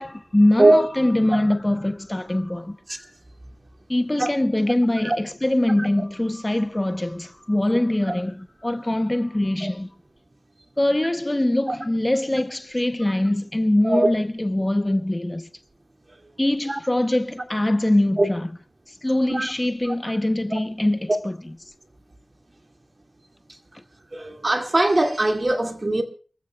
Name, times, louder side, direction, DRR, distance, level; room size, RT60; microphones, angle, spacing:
voice 1, 0.0-2.8 3.9-9.9 10.8-15.5 16.4-18.5 18.9-21.4 23.7-23.8, left 1 dB, 20° left, 0.7 m, -23 dB
voice 2, 24.1-26.0, right 2 dB, 35° right, 2.1 m, -20 dB
29.0 x 14.5 x 2.2 m
cardioid pair, 50°, 0 cm